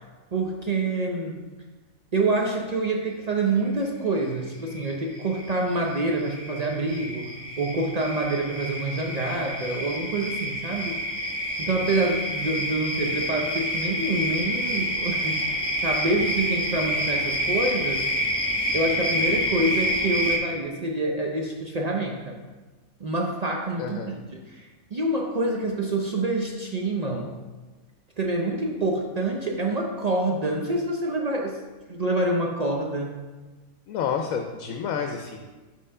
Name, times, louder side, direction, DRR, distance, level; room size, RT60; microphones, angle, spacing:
voice 1, 0.3-1.4 2.1-7.3 7.6-11.0 11.6-18.0 18.7-22.4 23.0-27.3 28.2-31.6 31.9-33.1, right 2 dB, 65° right, 0 dB, 0.4 m, -27 dB
sound 1, 4.2-4.3 4.7-20.4, equal, 5° left, 0.9 m, -28 dB
voice 2, 23.8-24.1 33.9-35.4, left 7 dB, 70° left, 4 dB, 1.0 m, -29 dB
5.5 x 4.8 x 5.4 m, 1.3 s
omnidirectional pair, 1.5 m